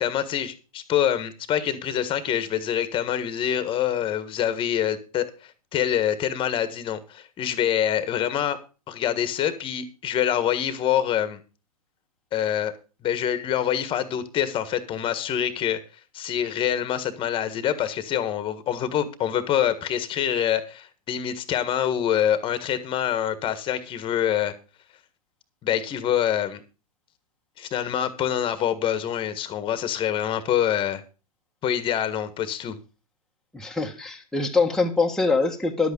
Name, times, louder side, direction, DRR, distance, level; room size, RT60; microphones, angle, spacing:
voice 1, 0.0-8.6 8.9-11.4 12.3-12.7 13.0-15.8 16.1-24.5 25.6-26.6 27.6-31.0 31.6-32.8, left 10 dB, 25° left, 1.6 m, -25 dB
voice 2, 33.5-35.9, left 3 dB, 5° left, 1.5 m, -23 dB
11.5 x 8.3 x 5.3 m
hypercardioid pair, 115°, 19 cm